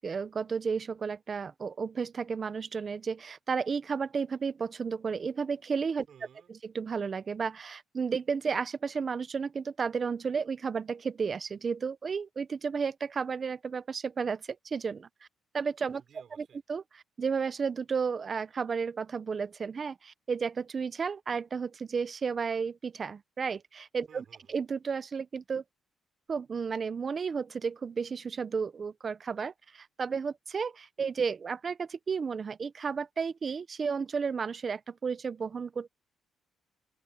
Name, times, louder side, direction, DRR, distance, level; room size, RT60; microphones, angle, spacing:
voice 1, 0.0-6.1 6.5-15.1 15.5-16.0 16.4-25.6 26.3-35.9, right 5 dB, 40° right, 0.9 m, -33 dB
voice 2, 6.1-6.5 16.0-16.6 24.1-24.6, right 8 dB, 60° right, 6.1 m, -56 dB
open air
cardioid pair, 90°, 0 cm